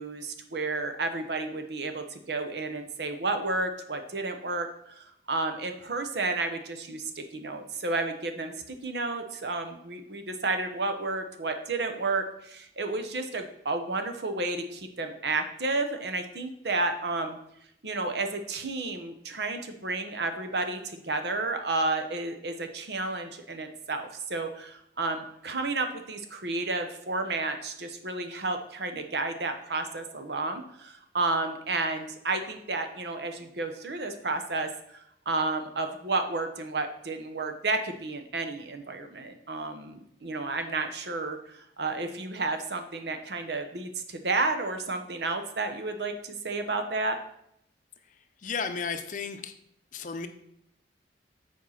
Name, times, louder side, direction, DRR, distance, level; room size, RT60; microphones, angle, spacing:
voice 1, 0.0-17.4 17.8-47.2, right 3 dB, 70° right, 6 dB, 0.9 m, -31 dB
voice 2, 48.4-49.5 49.9-50.3, left 5 dB, 45° left, 9 dB, 0.6 m, -33 dB
7.3 x 4.6 x 5.7 m, 0.75 s
head